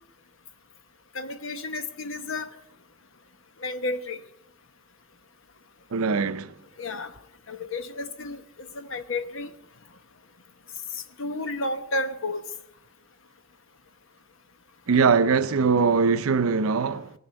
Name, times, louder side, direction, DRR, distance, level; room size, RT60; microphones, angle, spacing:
voice 1, 1.1-2.5 3.6-4.2 6.8-7.1 7.5-9.5 10.9-12.5, left 2 dB, 60° left, 1.1 m, -32 dB
voice 2, 5.9-6.5 14.9-17.1, right 5 dB, 75° right, 0.6 m, -22 dB
19.0 x 6.9 x 9.4 m
head